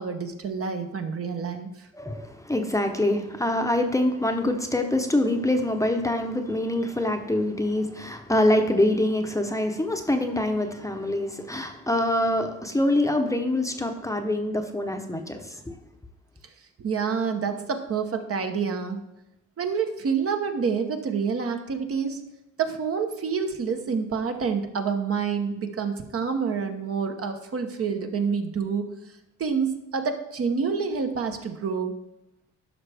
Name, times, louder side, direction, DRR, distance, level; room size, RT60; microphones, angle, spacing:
voice 1, 0.0-1.9 16.8-19.0 19.6-22.2 22.6-28.9 29.4-32.0, right 6 dB, 50° right, 5 dB, 1.1 m, -28 dB
voice 2, 1.9-15.7, left 1 dB, 10° left, 4 dB, 0.9 m, -25 dB
11.5 x 5.7 x 3.5 m, 0.85 s
cardioid pair, 90°, 30 cm